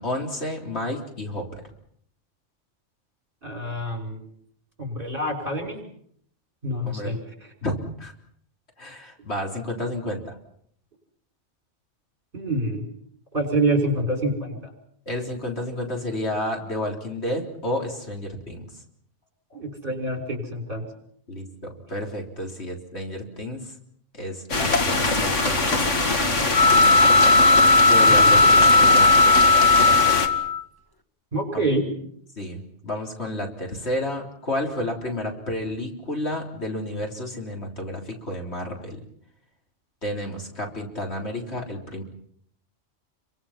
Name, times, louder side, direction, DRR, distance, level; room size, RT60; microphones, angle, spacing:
voice 1, 0.0-1.6 6.8-7.2 7.6-8.1 8.8-10.3 15.1-18.8 21.3-23.7 24.1-25.9 27.9-29.1 31.5-31.7 32.4-39.0 40.0-42.0, left 1 dB, 60° left, 1 dB, 4.0 m, -31 dB
voice 2, 3.4-4.2 4.8-5.8 6.6-7.2 12.3-12.9 13.3-14.7 19.5-20.8 28.1-28.3 31.3-31.9, right 1 dB, 45° right, 2 dB, 6.0 m, -26 dB
sound 1, 24.5-30.3, left 3 dB, 80° left, 2.5 m, -23 dB
sound 2, 26.5-30.6, left 3 dB, 20° left, 1.6 m, -16 dB
30.0 x 24.0 x 5.9 m, 0.66 s
omnidirectional pair, 1.2 m